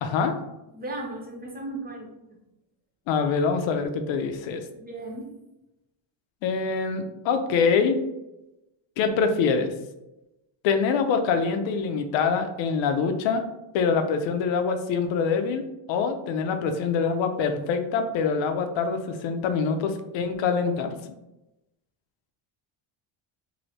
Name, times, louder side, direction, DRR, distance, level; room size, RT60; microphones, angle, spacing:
voice 1, 0.0-0.3 3.1-4.6 6.4-8.0 9.0-9.7 10.6-13.4 13.7-21.0, left 5 dB, 65° left, 6 dB, 0.6 m, -25 dB
voice 2, 0.7-2.1 4.7-5.3, right 2 dB, 20° right, 0 dB, 0.6 m, -36 dB
3.1 x 2.7 x 2.7 m, 0.94 s
cardioid pair, 110°, 49 cm